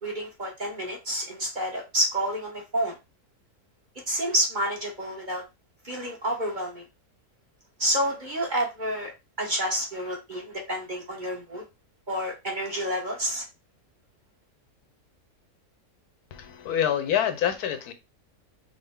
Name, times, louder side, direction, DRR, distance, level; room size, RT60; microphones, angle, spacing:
voice 1, 0.0-3.0 4.1-5.4 5.8-6.8 7.8-9.1 9.4-11.6 12.1-13.4, equal, 35° right, 1.0 m, -29 dB
voice 2, 16.3-17.9, left 9 dB, 80° left, 1.2 m, -26 dB
5.3 x 2.1 x 3.5 m
omnidirectional pair, 1.6 m